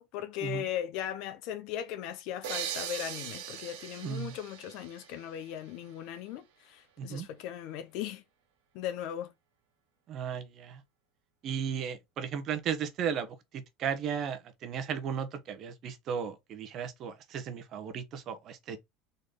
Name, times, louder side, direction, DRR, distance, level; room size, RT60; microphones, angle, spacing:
voice 1, 0.0-8.2 8.7-9.3, left 10 dB, 70° left, 0.9 m, -38 dB
sound 1, 2.4-6.0, right 9 dB, 80° right, 1.0 m, -40 dB
voice 2, 4.0-4.3 7.0-7.3 10.1-10.8 11.4-18.8, right 7 dB, 50° right, 1.1 m, -35 dB
4.0 x 3.2 x 3.8 m
supercardioid pair, 95°, 0 cm